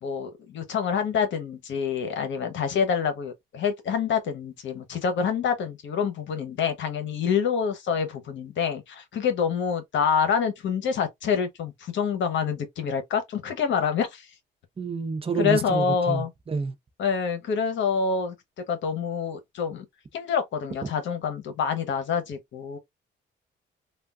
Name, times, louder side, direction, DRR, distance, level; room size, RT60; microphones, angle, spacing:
voice 1, 0.0-14.3 15.4-16.3 17.0-18.3 18.7-19.9 20.1-22.8, left 6 dB, 70° left, 0.9 m, -27 dB
voice 2, 14.8-16.7, right 4 dB, 30° right, 0.6 m, -29 dB
3.3 x 2.3 x 2.4 m
cardioid pair, 90°, 20 cm